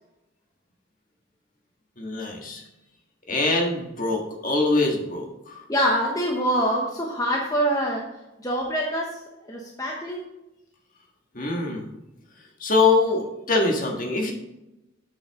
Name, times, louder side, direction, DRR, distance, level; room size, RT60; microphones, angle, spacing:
voice 1, 2.0-2.6 3.3-5.6 11.3-11.9 12.6-14.3, left 3 dB, 45° left, 1 dB, 1.7 m, -23 dB
voice 2, 5.7-8.0 8.4-9.2 9.5-10.2, equal, 20° left, -1 dB, 1.0 m, -25 dB
7.8 x 6.6 x 3.7 m, 0.94 s
head